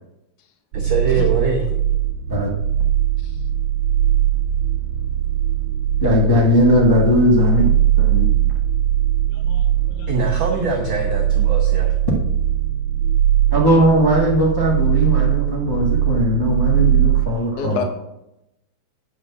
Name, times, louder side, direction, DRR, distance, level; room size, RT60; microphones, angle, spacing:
voice 1, 0.7-1.7 10.1-11.9, right 3 dB, 60° right, 0 dB, 1.3 m, -23 dB
sound 1, 0.7-17.3, right 11 dB, 80° right, 2.0 m, -20 dB
voice 2, 6.0-7.7 8.0-8.3 13.5-17.8, equal, 35° left, -4 dB, 0.3 m, -18 dB
voice 3, 9.3-10.7 17.6-17.8, left 6 dB, 70° left, 5 dB, 0.9 m, -31 dB
9.3 x 5.9 x 6.1 m, 0.90 s
omnidirectional pair, 3.4 m